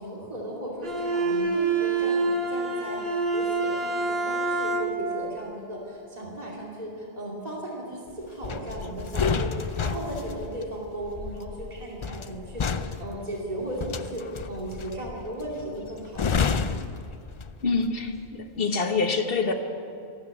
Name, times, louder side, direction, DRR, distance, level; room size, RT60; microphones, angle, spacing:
voice 1, 0.0-16.6, right 1 dB, 40° right, -4 dB, 2.6 m, -36 dB
Bowed string instrument, 0.8-5.2, right 3 dB, 70° right, 1.8 m, -26 dB
sound 1, 8.4-17.8 18.1-18.4, left 5 dB, 45° left, 0.4 m, -30 dB
voice 2, 17.6-19.5, left 4 dB, 65° left, 6 dB, 1.4 m, -26 dB
14.0 x 12.5 x 8.2 m, 2.6 s
omnidirectional pair, 1.1 m